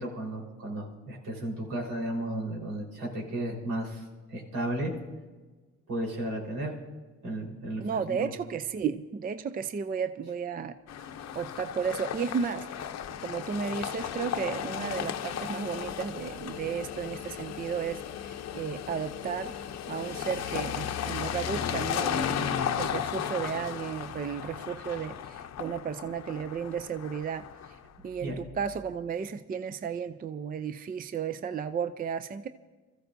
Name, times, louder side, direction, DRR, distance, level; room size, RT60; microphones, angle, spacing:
voice 1, 0.0-4.9 5.9-6.7 7.2-8.3 28.2-28.4, right 1 dB, 85° right, -2 dB, 4.3 m, -34 dB
voice 2, 7.8-12.7 13.2-19.6 19.9-27.5 28.0-32.5, right 7 dB, 30° right, 11 dB, 0.5 m, -34 dB
sound 1, 10.9-27.9, left 9 dB, 55° left, 0.7 m, -35 dB
26.5 x 14.5 x 2.7 m, 1.3 s
cardioid pair, 110°, 31 cm